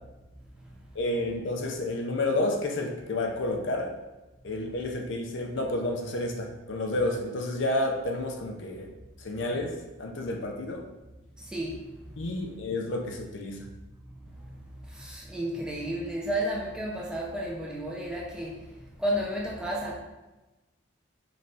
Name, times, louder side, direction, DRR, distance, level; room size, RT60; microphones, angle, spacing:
voice 1, 0.9-3.9 4.4-8.9 9.2-10.8 12.2-13.7, left 2 dB, 65° left, 2 dB, 0.6 m, -30 dB
voice 2, 15.0-18.6 19.0-19.9, equal, 5° right, -4 dB, 0.6 m, -31 dB
5.3 x 3.1 x 2.7 m, 1.1 s
head